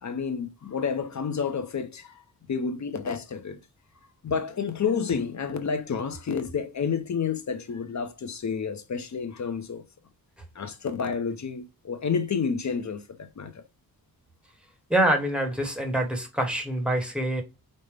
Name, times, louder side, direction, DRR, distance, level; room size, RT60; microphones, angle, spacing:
voice 1, 0.0-2.2 2.5-3.6 4.2-9.8 10.5-13.6, left 6 dB, 50° left, 0.6 m, -30 dB
voice 2, 14.9-17.4, right 1 dB, 5° right, 1.1 m, -25 dB
5.2 x 2.1 x 3.2 m
wide cardioid pair, 135°, 37 cm